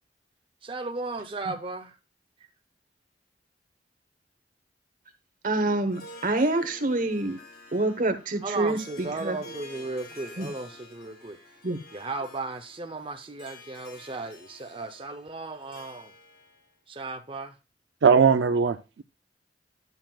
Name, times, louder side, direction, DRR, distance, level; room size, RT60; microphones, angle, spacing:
voice 1, 0.6-1.9 8.4-11.4 11.9-16.1 16.9-17.6, right 3 dB, 30° right, 0.7 m, -35 dB
voice 2, 5.4-7.4 7.7-9.4 10.4-10.5 11.6-11.8, right 2 dB, 45° right, 1.1 m, -27 dB
Harp, 5.8-16.7, left 1 dB, 55° left, 2.4 m, -49 dB
voice 3, 18.0-19.0, right 5 dB, 75° right, 0.5 m, -20 dB
11.0 x 7.5 x 2.4 m
head